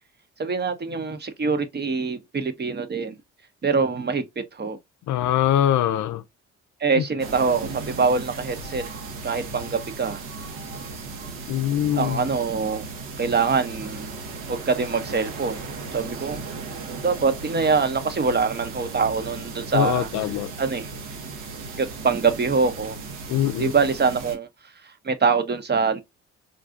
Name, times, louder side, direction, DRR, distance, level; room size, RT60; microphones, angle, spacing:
voice 1, 0.4-3.1 3.6-4.8 6.8-8.8 9.2-10.2 11.9-12.8 13.2-14.1 14.5-15.6 15.9-16.4 17.0-20.1 20.6-20.9 21.8-23.0 23.6-24.5 25.0-26.0, right 5 dB, 30° right, 0.7 m, -24 dB
voice 2, 5.1-6.2 11.5-12.2 19.7-20.5 23.3-23.7, left 11 dB, 65° left, 0.5 m, -22 dB
sound 1, 7.2-24.4, right 4 dB, 80° right, 0.9 m, -36 dB
3.7 x 2.3 x 2.5 m
hypercardioid pair, 50°, 32 cm